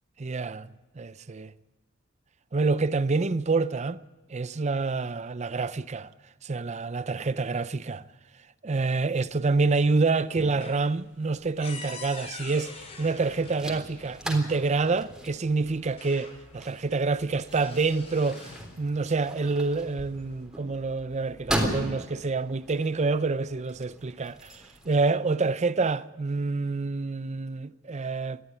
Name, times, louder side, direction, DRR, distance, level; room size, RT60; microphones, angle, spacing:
voice 1, 0.2-1.5 2.5-4.0 4.3-6.1 6.4-8.0 8.6-12.7 13.0-28.4, right 3 dB, 35° right, 0.5 m, -27 dB
sound 1, 9.3-9.8 10.2-14.2 15.3-15.4 15.8-16.7 17.1-18.7 19.6-20.4, left 3 dB, 35° left, 6.6 m, -45 dB
sound 2, 12.6-25.0, equal, 5° right, 3.5 m, -38 dB
20.0 x 14.5 x 9.5 m
head